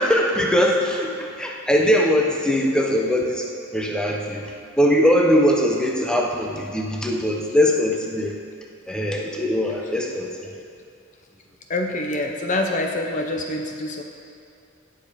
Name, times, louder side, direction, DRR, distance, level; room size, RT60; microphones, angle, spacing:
voice 1, 0.0-3.5 3.7-8.3 8.9-10.6, equal, 5° left, -1 dB, 0.9 m, -21 dB
voice 2, 11.7-14.0, left 2 dB, 35° left, 3 dB, 0.7 m, -25 dB
17.0 x 7.0 x 5.1 m, 2.4 s
head